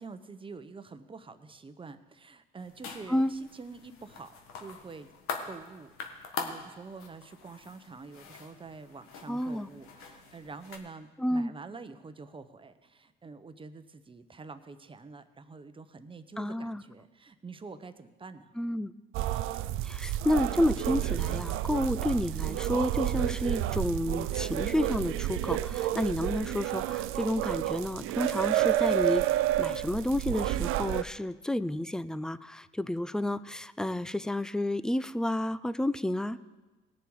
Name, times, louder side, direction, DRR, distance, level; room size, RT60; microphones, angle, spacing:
voice 1, 0.0-5.1 5.4-18.5, right 4 dB, 25° right, 10 dB, 0.9 m, -47 dB
sound 1, 2.6-10.8, left 5 dB, 80° left, 1.5 m, -43 dB
voice 2, 9.3-9.7 11.2-11.5 16.4-16.8 18.6-18.9 19.8-29.2 29.6-36.4, left 1 dB, 5° left, 16 dB, 0.4 m, -30 dB
sound 2, 19.1-31.0, right 13 dB, 75° right, 0.4 m, -30 dB
19.0 x 6.8 x 4.8 m, 1.2 s
supercardioid pair, 80°, 21 cm